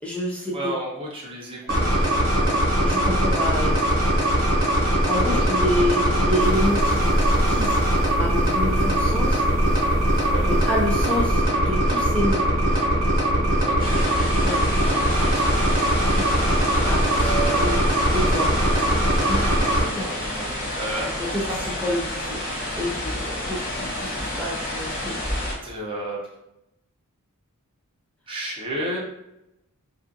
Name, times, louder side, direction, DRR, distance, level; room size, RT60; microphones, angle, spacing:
voice 1, 0.0-0.7 2.8-3.8 5.1-7.8 8.1-9.5 10.4-12.4 14.4-14.6 14.9-15.1 16.1-17.8 18.1-18.5 19.3-19.7 20.0-20.1 21.2-21.4 21.8-25.6, left 1 dB, 5° left, -4 dB, 0.3 m, -29 dB
voice 2, 0.5-2.7 5.2-5.9 10.1-10.6 13.6-14.0 15.2-15.8 17.2-17.8 18.2-18.9 19.8-21.1 25.0-26.2 28.3-29.0, right 2 dB, 25° right, -4 dB, 0.7 m, -33 dB
sound 1, 1.7-19.8, right 1 dB, 60° right, 0.8 m, -21 dB
sound 2, 6.4-11.4, equal, 75° left, 1.4 m, -28 dB
sound 3, 13.8-25.5, left 1 dB, 40° left, 0.9 m, -29 dB
2.4 x 2.4 x 2.5 m, 0.87 s
head